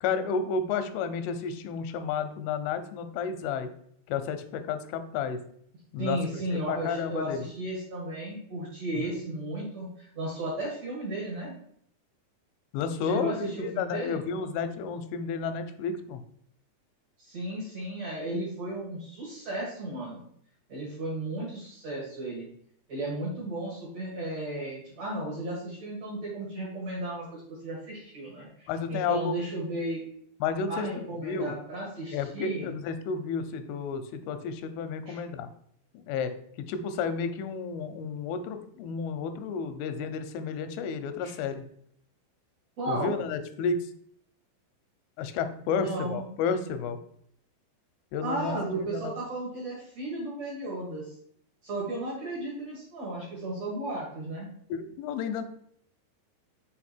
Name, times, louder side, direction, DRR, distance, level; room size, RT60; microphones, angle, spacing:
voice 1, 0.0-3.7 4.1-5.4 5.9-7.4 9.0-9.1 12.7-16.2 28.7-29.3 30.4-31.5 32.1-35.5 35.9-41.6 42.9-43.8 45.2-47.0 48.1-49.1 54.7-55.4, left 5 dB, 90° left, 9 dB, 3.1 m, -31 dB
voice 2, 6.0-11.5 13.0-14.2 17.2-20.2 20.7-22.5 22.9-30.0 30.7-32.7 35.1-35.2 41.2-41.3 42.8-43.1 45.8-46.2 48.2-51.1 51.6-54.5, right 1 dB, 50° right, -4 dB, 2.1 m, -34 dB
6.6 x 4.5 x 4.3 m, 0.65 s
omnidirectional pair, 5.5 m